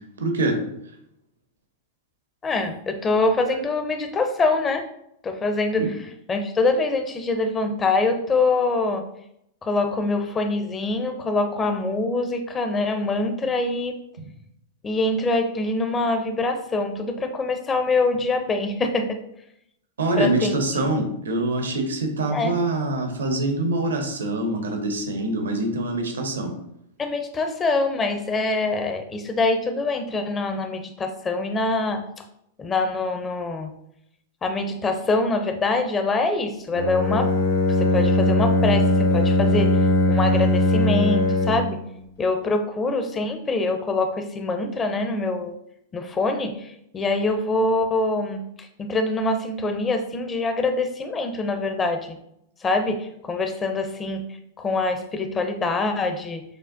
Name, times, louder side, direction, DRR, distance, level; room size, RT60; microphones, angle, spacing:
voice 1, 0.2-0.6 5.8-5.9 20.0-26.5, right 2 dB, 85° right, 4 dB, 0.8 m, -24 dB
voice 2, 2.4-4.9 5.2-5.9 6.3-9.0 9.6-13.9 14.8-19.2 20.2-20.6 22.3-22.6 27.0-32.0 32.6-33.7 34.4-37.3 37.8-41.8 42.2-45.5 45.9-52.2 52.6-54.2 54.6-56.4, left 3 dB, 20° left, 6 dB, 0.5 m, -24 dB
Bowed string instrument, 36.7-41.8, left 1 dB, 90° left, 1.3 m, -20 dB
6.4 x 2.2 x 2.5 m, 0.77 s
hypercardioid pair, 110°, 0 cm